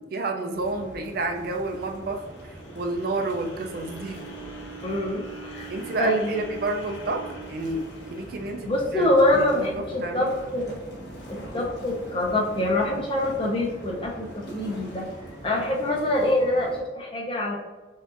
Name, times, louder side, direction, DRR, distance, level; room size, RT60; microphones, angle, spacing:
voice 1, 0.0-4.2 5.7-9.1 9.5-10.3 11.5-11.7, right 2 dB, 50° right, 4 dB, 0.4 m, -30 dB
sound 1, 0.5-16.8, right 1 dB, 65° left, 1.2 m, -42 dB
sound 2, 1.6-9.7, right 3 dB, 80° left, 0.7 m, -43 dB
voice 2, 4.8-5.7 6.0-6.4 8.6-10.7 11.3-15.1 15.4-17.6, left 1 dB, 25° left, -1 dB, 0.6 m, -25 dB
5.7 x 2.4 x 2.5 m, 1.3 s
head